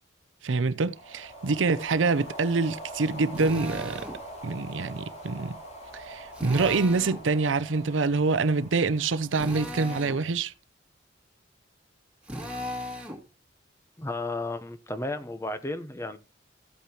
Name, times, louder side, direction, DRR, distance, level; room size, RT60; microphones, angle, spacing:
voice 1, 0.4-4.1 4.4-5.6 5.9-10.5, right 4 dB, 85° right, 0.6 m, -26 dB
sound 1, 0.8-10.3, right 1 dB, 35° left, 3.0 m, -44 dB
Drill, 3.3-4.2 6.3-7.2 9.3-10.2 12.2-13.2, left 1 dB, 5° right, 2.1 m, -36 dB
voice 2, 14.0-16.2, left 2 dB, 15° left, 0.8 m, -33 dB
14.5 x 8.2 x 2.9 m
head